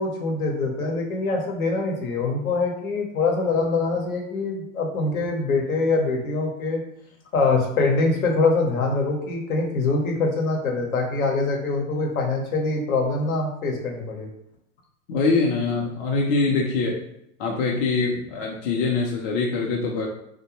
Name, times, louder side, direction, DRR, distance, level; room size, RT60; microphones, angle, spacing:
voice 1, 0.0-6.8 7.3-14.3, left 3 dB, 80° left, 1 dB, 0.8 m, -24 dB
voice 2, 15.1-17.0 17.4-20.1, left 3 dB, 40° left, -1 dB, 0.5 m, -23 dB
2.5 x 2.1 x 2.9 m, 0.78 s
hypercardioid pair, 110°, 42 cm